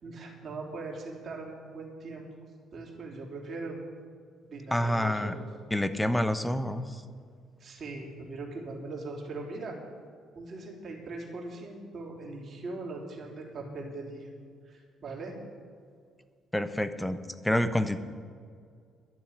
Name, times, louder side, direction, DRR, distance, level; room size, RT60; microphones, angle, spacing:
voice 1, 0.0-2.2 2.7-3.8 4.5-5.4 7.6-9.8 10.3-14.3 14.7-15.3, right 3 dB, 50° right, -1 dB, 3.5 m, -40 dB
voice 2, 4.7-5.3 5.7-7.0 16.5-17.2 17.4-18.0, left 1 dB, 5° left, 10 dB, 1.0 m, -27 dB
12.0 x 7.1 x 9.8 m, 2.2 s
hypercardioid pair, 50°, 0 cm